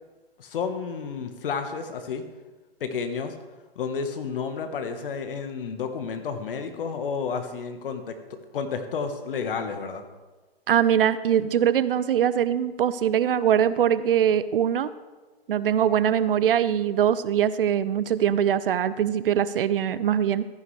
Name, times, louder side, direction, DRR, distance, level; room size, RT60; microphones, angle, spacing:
voice 1, 0.4-2.2 2.8-3.3 3.7-10.0, left 5 dB, 60° left, 8 dB, 1.3 m, -31 dB
voice 2, 10.7-14.9 15.5-20.4, right 9 dB, 60° right, 16 dB, 0.6 m, -22 dB
13.5 x 9.9 x 3.3 m, 1.3 s
figure-of-eight pair, 125°, 31 cm